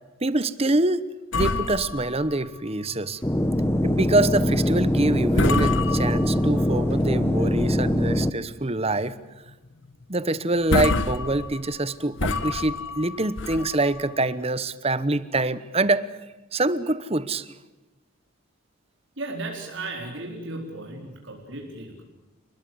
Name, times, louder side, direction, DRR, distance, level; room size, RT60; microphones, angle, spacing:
voice 1, 0.2-1.1 1.3-3.2 3.8-9.2 10.1-16.1 16.5-17.5, right 2 dB, 25° right, 15 dB, 1.0 m, -25 dB
sound 1, 1.3-3.1 3.5-3.6 4.1-4.4 4.9-5.1 5.3-6.7 7.2-8.0 8.4-8.5 9.0-9.2 9.5-9.6 10.2-10.3 10.6-14.3, left 3 dB, 55° left, 1.6 m, -28 dB
sound 2, 3.2-8.3, left 1 dB, 10° left, 0.9 m, -23 dB
voice 2, 19.2-22.0, right 2 dB, 60° right, 0 dB, 4.4 m, -35 dB
29.5 x 21.0 x 7.9 m, 1.1 s
head